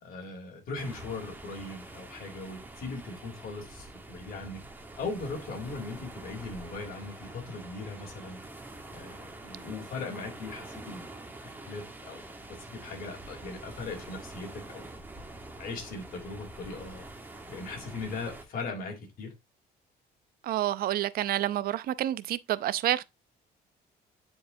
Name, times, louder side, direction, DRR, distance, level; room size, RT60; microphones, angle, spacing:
voice 1, 0.0-4.6 5.0-8.4 8.9-11.0 11.7-12.2 12.5-14.9 15.6-17.1 17.5-19.3, left 3 dB, 60° left, 3.2 m, -39 dB
sound 1, 0.7-18.4, right 2 dB, 10° right, 1.3 m, -46 dB
voice 2, 20.4-23.0, right 13 dB, 60° right, 0.6 m, -28 dB
9.5 x 4.7 x 2.7 m
cardioid pair, 110°, 17 cm